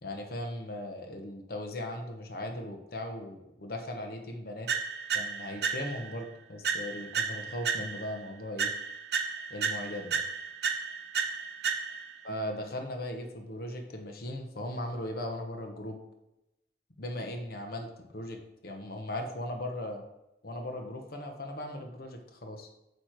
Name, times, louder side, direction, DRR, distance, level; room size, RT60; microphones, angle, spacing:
voice 1, 0.0-4.7 5.1-8.7 9.5-10.2 12.2-16.0 17.0-20.0 20.4-22.7, left 1 dB, 60° left, 3 dB, 1.0 m, -38 dB
Music Psycho Strikes, 4.7-6.2 6.6-8.2 8.6-12.2, right 6 dB, 65° right, 0.7 m, -33 dB
8.8 x 3.3 x 4.5 m, 0.90 s
head